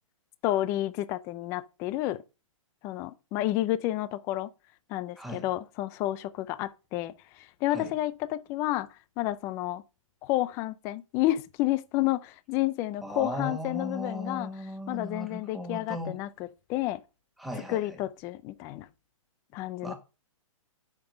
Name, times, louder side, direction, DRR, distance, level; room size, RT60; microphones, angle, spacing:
voice 1, 0.4-2.2 2.8-4.5 4.9-8.9 9.2-9.8 10.2-14.5 14.9-16.3 16.7-17.0 17.7-18.9 19.5-19.9, left 15 dB, 15° left, 0.4 m, -30 dB
voice 2, 5.2-5.5 7.7-7.9 13.0-16.2 17.4-18.0 19.8-19.9, left 1 dB, ahead, 1.7 m, -37 dB
8.7 x 6.0 x 5.2 m
hypercardioid pair, 160°, 17 cm